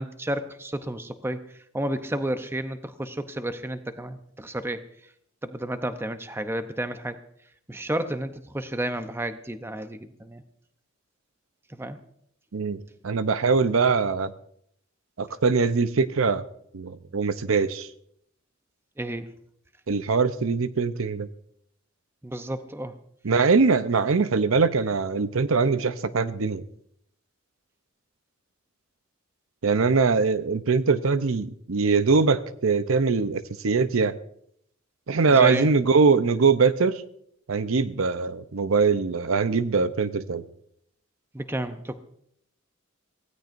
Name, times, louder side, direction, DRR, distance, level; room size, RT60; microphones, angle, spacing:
voice 1, 0.0-1.4 1.7-4.8 5.4-7.2 7.7-10.4 11.7-12.0 19.0-19.4 22.2-22.9 35.3-35.7 41.3-42.0, right 1 dB, 10° right, 9 dB, 0.7 m, -31 dB
voice 2, 12.5-14.3 15.2-16.4 16.7-17.9 19.9-21.3 23.2-26.6 29.6-34.1 35.1-37.0 37.5-40.4, right 4 dB, 75° right, 12 dB, 0.7 m, -22 dB
23.5 x 16.5 x 2.6 m, 0.70 s
head